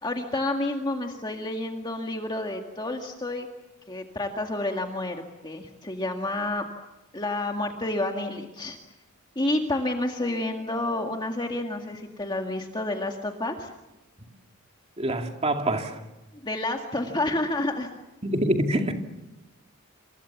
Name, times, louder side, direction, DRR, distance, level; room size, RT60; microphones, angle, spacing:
voice 1, 0.0-3.5 3.9-6.7 7.1-8.8 9.4-13.7 16.4-17.9, left 2 dB, 20° left, 3 dB, 1.9 m, -29 dB
voice 2, 15.0-16.0 18.2-18.9, right 1 dB, 30° right, 4 dB, 2.5 m, -25 dB
28.0 x 27.5 x 7.2 m, 1.0 s
head